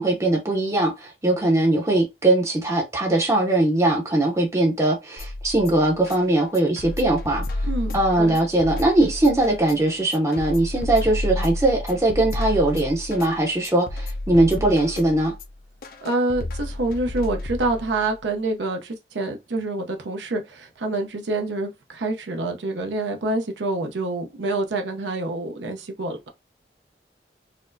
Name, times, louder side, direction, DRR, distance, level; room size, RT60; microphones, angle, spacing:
voice 1, 0.0-7.5 7.9-15.3, right 1 dB, 15° right, 0.5 m, -20 dB
sound 1, 5.2-18.2, left 1 dB, 55° left, 0.4 m, -31 dB
voice 2, 7.6-8.4 16.0-26.2, right 2 dB, 85° right, 0.6 m, -27 dB
4.2 x 2.0 x 2.5 m
head